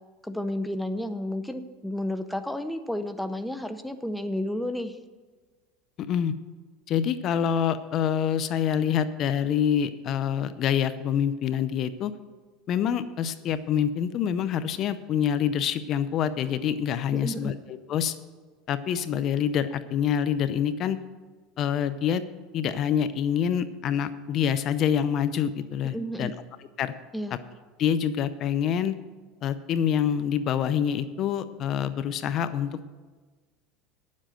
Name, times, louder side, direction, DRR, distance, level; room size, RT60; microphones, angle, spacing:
voice 1, 0.2-5.0 17.1-17.5 25.9-26.3 27.1-27.3, left 1 dB, 5° left, 8 dB, 0.6 m, -31 dB
voice 2, 6.0-6.3 6.9-12.1 12.7-18.1 18.7-21.0 21.6-22.2 22.5-26.3 26.8-26.9 27.8-28.9 29.4-32.9, left 8 dB, 45° left, 13 dB, 0.6 m, -26 dB
10.0 x 7.5 x 7.8 m, 1.3 s
supercardioid pair, 125°, 0 cm